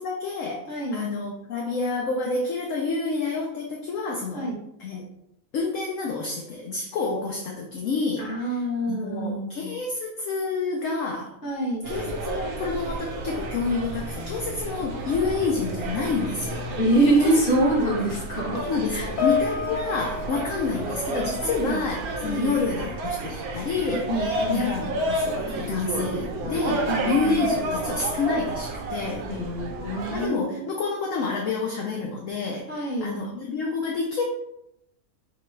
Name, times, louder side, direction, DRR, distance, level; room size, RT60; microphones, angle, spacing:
voice 1, 0.0-4.5 4.8-5.0 5.5-8.5 8.9-11.3 11.9-16.7 17.2-17.3 18.5-29.3 30.1-34.2, left 4 dB, 65° left, 0 dB, 0.9 m, -28 dB
voice 2, 0.7-1.0 4.3-4.6 8.2-9.7 11.4-11.9 16.8-18.6 18.9-19.1 21.4-21.8 22.2-22.5 23.8-24.7 26.5-27.5 29.3-30.7 32.7-33.1, right 1 dB, 35° left, -4 dB, 1.4 m, -26 dB
sound 1, 11.8-30.3, right 2 dB, 75° right, 1.2 m, -31 dB
Piano, 19.2-21.8 22.1-22.4 23.2-23.3, left 7 dB, 80° left, 1.3 m, -30 dB
5.9 x 2.3 x 3.2 m, 0.81 s
omnidirectional pair, 1.6 m